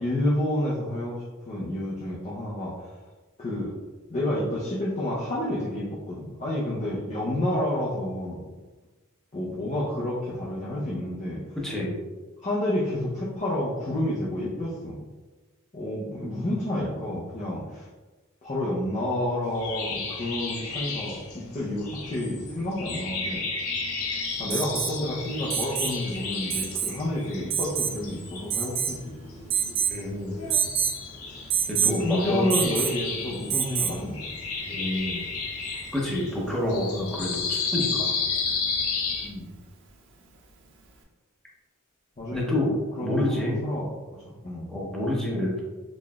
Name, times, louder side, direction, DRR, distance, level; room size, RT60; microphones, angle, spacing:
voice 1, 0.0-2.7 3.4-3.7 4.1-8.4 9.3-11.4 12.4-15.0 15.7-17.9 18.4-23.4 24.4-29.1 32.0-34.2 39.2-39.5 42.2-42.7 43.0-43.9 44.4-44.7, left 1 dB, 35° left, -6 dB, 0.6 m, -29 dB
voice 2, 11.6-11.9 29.9-30.3 31.7-32.6 34.7-35.2 35.9-38.2 42.3-42.7 43.0-43.6 44.7-45.6, left 1 dB, ahead, -4 dB, 0.7 m, -28 dB
sound 1, 19.4-39.3, left 4 dB, 80° left, 0.7 m, -33 dB
Alarm, 24.5-25.0 25.5-26.0 26.5-27.0 27.5-28.0 28.5-29.0 29.5-30.0 30.5-31.0 31.5-32.0 32.5-33.0 33.5-34.0 35.7-35.8, right 8 dB, 60° right, 0.6 m, -27 dB
4.1 x 3.2 x 2.3 m, 1.2 s
head